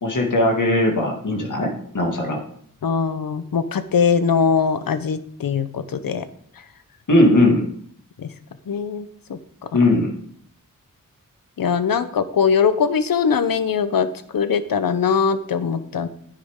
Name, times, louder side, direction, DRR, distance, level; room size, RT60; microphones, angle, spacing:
voice 1, 0.0-2.4 7.1-7.7 9.7-10.2, left 1 dB, 65° left, 1 dB, 2.1 m, -18 dB
voice 2, 2.8-6.2 8.2-8.3 8.7-9.4 11.6-14.1 14.3-16.1, left 6 dB, 90° left, 12 dB, 0.8 m, -21 dB
10.0 x 9.6 x 3.7 m, 0.64 s
wide cardioid pair, 80°, 33 cm